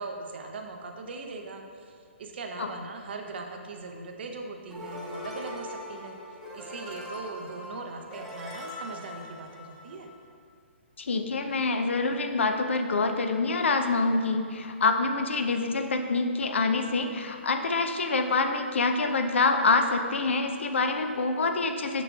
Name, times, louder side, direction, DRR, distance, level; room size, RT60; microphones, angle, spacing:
voice 1, 0.0-6.1 6.5-10.1, right 3 dB, 55° right, 3 dB, 0.7 m, -40 dB
sound 1, 4.7-10.2, left 1 dB, 5° right, 0.9 m, -41 dB
voice 2, 11.0-22.0, left 3 dB, 65° left, 5 dB, 0.5 m, -26 dB
6.6 x 6.1 x 2.4 m, 2.2 s
figure-of-eight pair, 125°, 7 cm